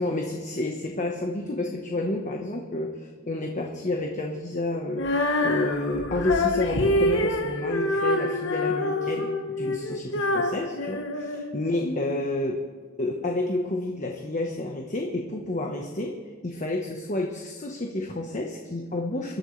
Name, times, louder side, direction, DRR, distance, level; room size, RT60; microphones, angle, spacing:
voice 1, 0.0-9.3 9.6-12.6 13.0-16.1 16.4-19.4, left 2 dB, 35° left, 1 dB, 1.2 m, -30 dB
Female singing, 4.9-12.0, left 1 dB, 65° left, 1.5 m, -26 dB
25.0 x 12.5 x 3.3 m, 1.5 s
head